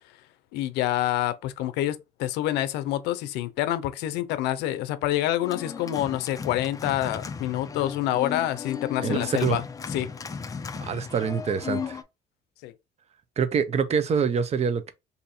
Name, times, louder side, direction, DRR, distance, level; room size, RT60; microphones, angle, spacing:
voice 1, 0.5-9.6 9.9-10.1 12.6-12.7, left 13 dB, 90° left, 0.5 m, -27 dB
Organ, 5.4-12.0, left 6 dB, 20° left, 0.4 m, -35 dB
voice 2, 9.0-9.6 10.9-12.0 13.4-14.9, right 6 dB, 40° right, 0.5 m, -25 dB
2.7 x 2.6 x 4.1 m
cardioid pair, 110°, 17 cm